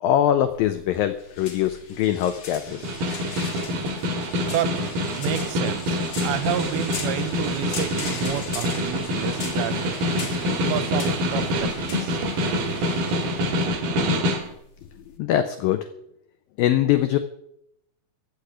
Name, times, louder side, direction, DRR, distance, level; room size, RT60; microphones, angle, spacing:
voice 1, 0.0-2.9 15.2-15.8 16.6-17.2, left 11 dB, 85° left, 9 dB, 2.0 m, -22 dB
slow pull, 0.5-15.2, left 5 dB, 45° left, 2.4 m, -39 dB
Snare drum, 2.7-14.5, equal, 60° right, 3.1 m, -26 dB
voice 2, 4.3-4.7 5.2-10.4 10.7-12.2, right 10 dB, 80° right, 13 dB, 3.1 m, -30 dB
15.0 x 6.4 x 9.8 m, 0.75 s
omnidirectional pair, 5.1 m